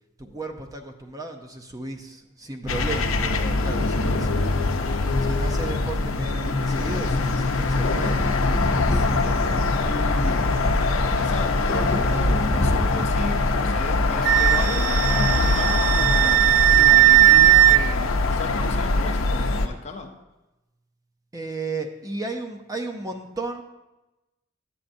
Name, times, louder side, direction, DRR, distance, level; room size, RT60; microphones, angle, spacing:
voice 1, 0.2-4.8 5.2-8.3 21.3-23.6, right 2 dB, 15° right, 4 dB, 0.6 m, -34 dB
sound 1, 2.7-19.7, left 3 dB, 90° left, 0.7 m, -23 dB
sound 2, 6.7-13.8, left 1 dB, 65° left, 1.1 m, -30 dB
voice 2, 8.9-10.6 11.2-20.2, left 3 dB, 35° left, 3 dB, 0.6 m, -35 dB
Wind instrument woodwind instrument, 14.2-17.8, right 17 dB, 75° right, 0.3 m, -17 dB
11.0 x 8.4 x 2.6 m, 1.0 s
head